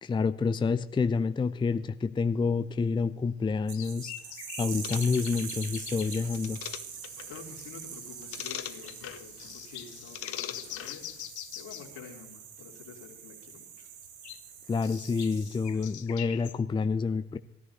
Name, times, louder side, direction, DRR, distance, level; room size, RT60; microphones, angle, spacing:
voice 1, 0.0-4.1 4.6-6.6 14.7-17.4, left 4 dB, 15° left, 13 dB, 0.5 m, -28 dB
sound 1, 1.5-1.6 2.3-2.4 3.7-6.5 7.1-7.2 7.4-7.5 7.9-8.2 8.8-9.0 9.4-11.9 14.0-16.6, left 12 dB, 85° left, 0.6 m, -44 dB
sound 2, 3.7-16.0, right 8 dB, 70° right, 1.4 m, -44 dB
sound 3, 4.8-11.3, left 11 dB, 45° left, 0.7 m, -43 dB
voice 2, 7.2-13.9, left 6 dB, 60° left, -9 dB, 3.0 m, -49 dB
19.5 x 14.0 x 2.8 m, 0.81 s
figure-of-eight pair, 50°, 33 cm